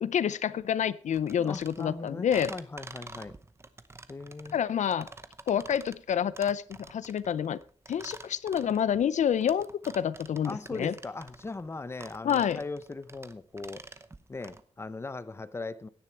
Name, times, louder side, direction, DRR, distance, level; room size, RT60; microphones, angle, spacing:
voice 1, 0.0-2.5 4.5-5.1 5.5-6.6 6.9-7.6 7.9-10.9 12.2-12.6, left 8 dB, 80° left, 0.5 m, -28 dB
sound 1, 1.1-14.6, right 3 dB, 20° right, 0.8 m, -48 dB
voice 2, 1.4-3.3 4.1-4.6 10.4-13.8 14.3-15.9, left 3 dB, 20° left, 0.7 m, -39 dB
16.0 x 10.5 x 4.6 m
wide cardioid pair, 155°, 12 cm